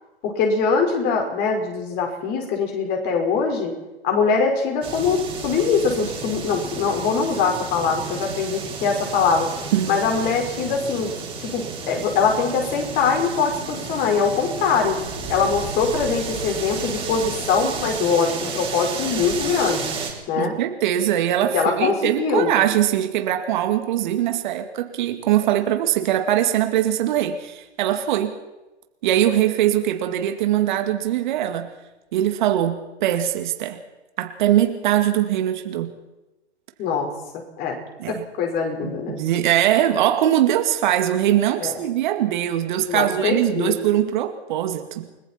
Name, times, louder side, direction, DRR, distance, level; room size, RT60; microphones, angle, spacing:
voice 1, 0.2-3.7 4.0-9.5 9.9-11.1 11.5-15.0 15.3-20.0 20.3-20.5 21.5-22.5 36.8-37.1 37.6-37.8 38.1-39.2 41.6-41.8 42.9-43.8, left 5 dB, 30° left, 2 dB, 5.1 m, -22 dB
sound 1, 4.8-20.1, right 5 dB, 15° right, 4.6 m, -32 dB
voice 2, 20.4-28.3 29.0-31.7 32.1-33.8 34.2-35.9 38.0-38.2 38.8-45.1, right 11 dB, 45° right, 6 dB, 2.3 m, -21 dB
30.0 x 20.0 x 4.5 m, 1.0 s
hypercardioid pair, 125°, 33 cm